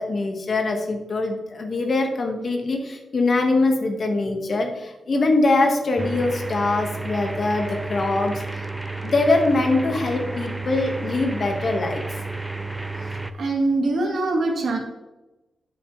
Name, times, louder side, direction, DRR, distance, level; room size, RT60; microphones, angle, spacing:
voice 1, 0.0-8.7 9.0-12.0, left 2 dB, 50° left, 3 dB, 1.8 m, -23 dB
sound 1, 6.0-13.3, right 3 dB, 10° right, 0.5 m, -31 dB
voice 2, 13.4-14.8, right 2 dB, 65° right, 1 dB, 2.1 m, -23 dB
10.5 x 7.5 x 3.4 m, 1.0 s
cardioid pair, 100°, 0 cm